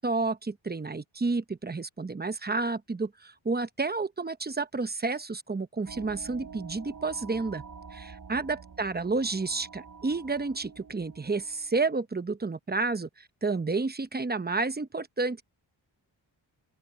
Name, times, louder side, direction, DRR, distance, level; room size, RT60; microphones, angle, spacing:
voice 1, 0.0-7.6 7.9-15.4, right 3 dB, 20° right, 0.8 m, -30 dB
sound 1, 5.9-11.7, right 5 dB, 45° right, 2.6 m, -47 dB
open air
wide cardioid pair, 100°, 47 cm